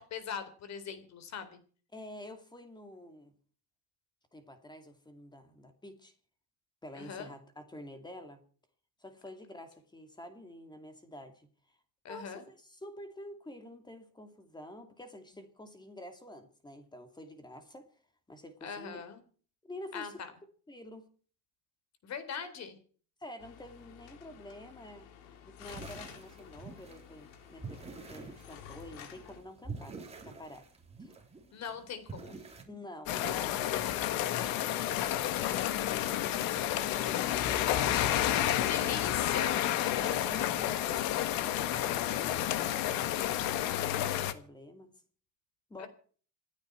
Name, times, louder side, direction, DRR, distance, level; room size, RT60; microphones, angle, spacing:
voice 1, 0.0-1.6 6.9-7.3 12.0-12.4 18.6-19.2 19.9-20.3 22.0-22.8 31.5-32.4 38.3-39.6 45.8-45.9, left 6 dB, 45° left, 11 dB, 3.8 m, -40 dB
voice 2, 1.9-3.3 4.3-6.1 6.8-8.4 9.0-11.5 12.1-17.9 18.3-19.0 19.6-20.3 20.7-21.1 23.2-30.7 31.0-31.1 32.7-37.9 40.0-41.3 41.6-44.9 45.7-45.9, left 1 dB, 10° left, 7 dB, 2.6 m, -49 dB
sound 1, 23.4-29.4, left 9 dB, 90° left, 3.8 m, -51 dB
sound 2, 25.6-32.6, right 4 dB, 15° right, 3.6 m, -47 dB
sound 3, 33.1-44.3, left 12 dB, 65° left, 1.6 m, -30 dB
28.0 x 9.8 x 4.6 m, 0.44 s
cardioid pair, 130°, 37 cm